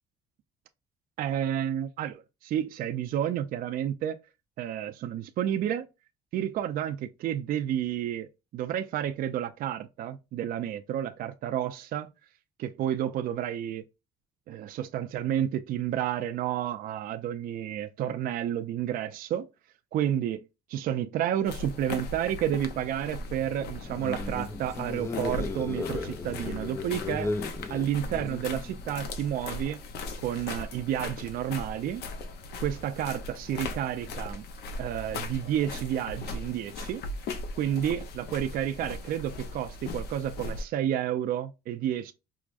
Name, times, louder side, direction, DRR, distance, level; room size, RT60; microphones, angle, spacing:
voice 1, 1.2-4.2 4.6-5.9 6.3-12.1 12.6-13.8 14.5-19.5 19.9-20.4 20.7-27.3 27.7-29.8 30.2-32.0 32.6-34.4 34.8-37.0 37.6-42.1, right 10 dB, 60° right, 0.4 m, -30 dB
sound 1, 21.4-40.6, left 2 dB, 70° left, 0.6 m, -39 dB
sound 2, 23.8-28.9, left 3 dB, 15° left, 0.3 m, -35 dB
4.7 x 2.1 x 2.4 m
cardioid pair, 110°, 17 cm